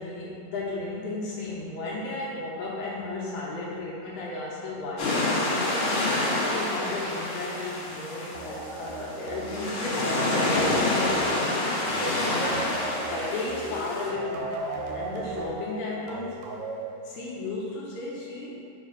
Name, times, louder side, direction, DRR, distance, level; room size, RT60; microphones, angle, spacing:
voice 1, 0.0-5.9 6.5-11.7 12.9-14.5 14.9-16.5 17.0-18.6, left 2 dB, 75° left, -5 dB, 2.0 m, -34 dB
sound 1, 5.0-14.1, left 2 dB, 55° left, 1.6 m, -28 dB
sound 2, 8.3-17.6, right 2 dB, 75° right, 1.6 m, -36 dB
7.3 x 3.2 x 5.2 m, 2.7 s
omnidirectional pair, 3.9 m